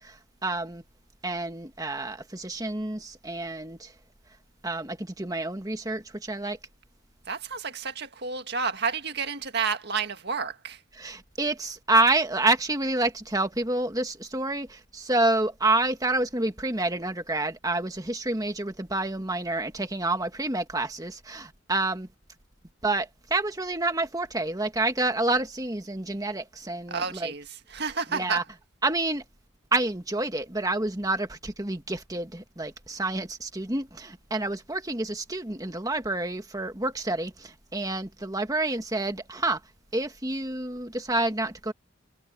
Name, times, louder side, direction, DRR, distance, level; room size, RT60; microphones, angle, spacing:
voice 1, 0.0-0.8 1.2-3.9 4.6-6.6 10.9-22.1 22.8-27.3 28.1-28.4 28.8-29.2 29.7-39.6 39.9-41.7, right 2 dB, 15° right, 1.7 m, -28 dB
voice 2, 7.3-10.8 26.9-28.4, right 5 dB, 50° right, 1.9 m, -30 dB
head